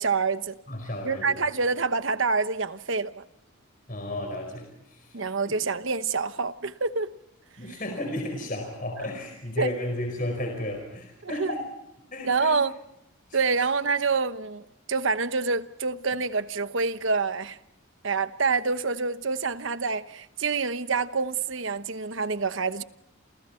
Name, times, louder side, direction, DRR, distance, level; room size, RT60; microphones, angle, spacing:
voice 1, 0.0-0.5 1.0-3.2 5.1-7.1 9.6-9.7 11.2-11.5 12.2-12.7 13.3-17.6 18.0-22.8, right 4 dB, 65° right, 1.1 m, -27 dB
voice 2, 0.7-1.5 3.9-5.5 7.6-11.6 12.1-12.6 13.3-13.6, left 1 dB, 40° left, 4.9 m, -33 dB
29.5 x 28.5 x 4.5 m
head